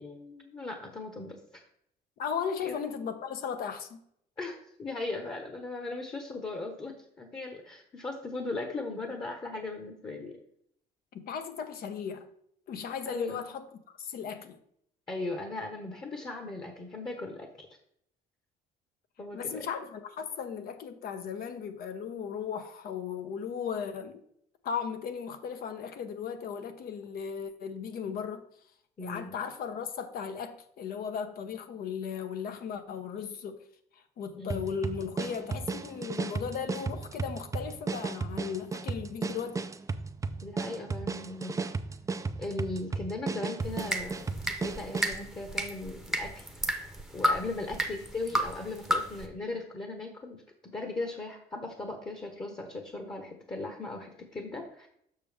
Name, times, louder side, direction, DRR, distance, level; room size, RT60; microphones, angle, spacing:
voice 1, 0.0-1.6 2.6-2.8 4.4-10.4 13.0-13.4 15.1-17.7 19.2-19.6 29.0-29.4 34.4-34.6 40.4-41.5 42.4-46.5 46.8-54.9, left 2 dB, 25° left, 1.2 m, -38 dB
voice 2, 2.2-4.0 11.1-12.3 12.7-13.6 14.0-14.6 19.3-24.2 24.6-28.4 29.0-33.6 34.2-39.7, left 7 dB, 60° left, 1.0 m, -36 dB
sound 1, 34.5-45.2, right 4 dB, 20° right, 0.4 m, -35 dB
sound 2, 43.6-49.3, equal, ahead, 0.9 m, -33 dB
6.8 x 6.2 x 3.4 m
cardioid pair, 110°, 17 cm